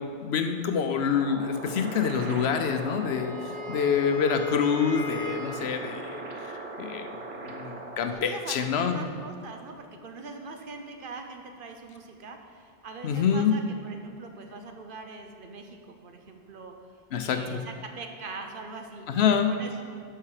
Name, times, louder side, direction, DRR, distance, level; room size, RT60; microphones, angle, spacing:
voice 1, 0.2-3.4 3.7-7.2 7.4-9.1 13.0-13.6 17.1-17.6 19.1-19.5, left 7 dB, 80° left, 7 dB, 0.9 m, -26 dB
sound 1, 1.1-8.1, right 3 dB, 85° right, 1.2 m, -39 dB
Wind instrument woodwind instrument, 2.6-5.8, left 4 dB, 65° left, 2.2 m, -38 dB
voice 2, 8.1-16.7 17.2-19.8, right 4 dB, 60° right, 4 dB, 1.0 m, -42 dB
11.5 x 5.7 x 4.9 m, 2.2 s
omnidirectional pair, 1.1 m